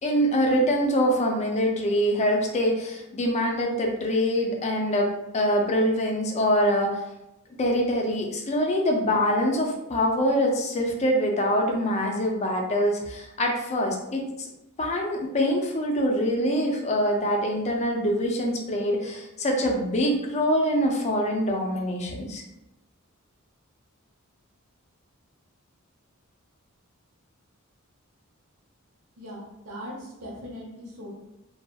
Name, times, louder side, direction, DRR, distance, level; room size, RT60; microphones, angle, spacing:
voice 1, 0.0-7.0 7.6-14.5 14.8-22.4, equal, 30° left, 1 dB, 0.4 m, -24 dB
voice 2, 29.2-31.1, equal, 90° right, -4 dB, 0.9 m, -39 dB
2.7 x 2.3 x 2.3 m, 0.91 s
head